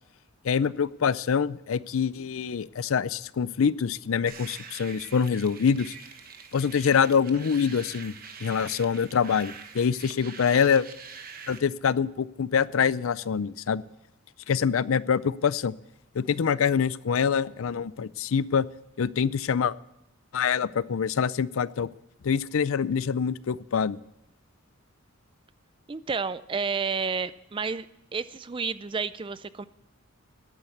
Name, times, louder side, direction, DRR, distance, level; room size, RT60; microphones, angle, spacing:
voice 1, 0.4-5.9 6.5-8.1 8.4-10.9 11.5-13.8 14.5-15.7 16.1-18.7 19.0-19.7 20.3-21.9 22.2-24.0, left 6 dB, 70° left, 19 dB, 0.4 m, -25 dB
sound 1, 4.3-11.6, right 6 dB, 45° right, 1.3 m, -45 dB
voice 2, 25.9-27.9 28.1-29.6, right 5 dB, 25° right, 16 dB, 0.4 m, -30 dB
12.0 x 9.0 x 8.1 m, 0.89 s
head